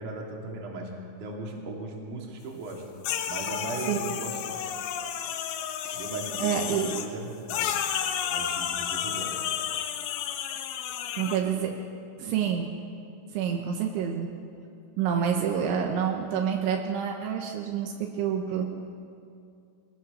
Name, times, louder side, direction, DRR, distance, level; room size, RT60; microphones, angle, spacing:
voice 1, 0.0-2.9 3.3-4.8 5.2-5.4 5.9-7.8 8.3-9.4, right 2 dB, 45° right, -1 dB, 3.8 m, -38 dB
sound 1, 3.0-7.1 7.5-11.4, left 9 dB, 75° left, 3.4 m, -31 dB
voice 2, 6.4-6.9 11.2-11.8 12.2-12.7 13.3-14.3 15.0-18.7, right 8 dB, 80° right, 2 dB, 3.5 m, -28 dB
24.5 x 18.0 x 6.9 m, 2.4 s
omnidirectional pair, 5.6 m